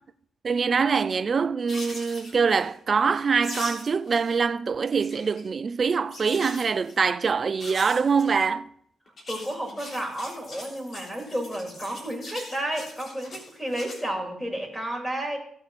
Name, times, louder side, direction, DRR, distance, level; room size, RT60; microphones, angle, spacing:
voice 1, 0.4-8.7, right 5 dB, 45° right, 0.4 m, -24 dB
sound 1, 1.7-2.7 3.4-4.4 4.7-5.4 6.1-7.0 7.6-8.3 9.1-14.0, left 1 dB, 55° left, 3.4 m, -41 dB
voice 2, 9.3-15.4, right 1 dB, 5° left, 3.5 m, -31 dB
16.5 x 6.8 x 4.3 m
cardioid pair, 85°, 0 cm